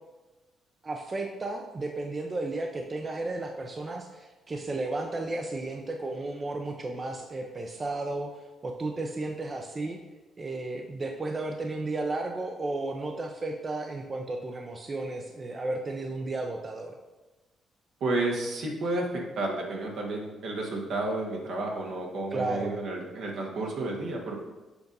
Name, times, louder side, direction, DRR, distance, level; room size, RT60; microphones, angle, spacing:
voice 1, 0.8-10.0 10.4-16.9 22.3-22.8, right 2 dB, 30° right, 3 dB, 0.5 m, -33 dB
voice 2, 18.0-24.4, right 2 dB, 70° right, -1 dB, 1.3 m, -31 dB
6.9 x 2.6 x 5.3 m, 1.2 s
cardioid pair, 90°, 0 cm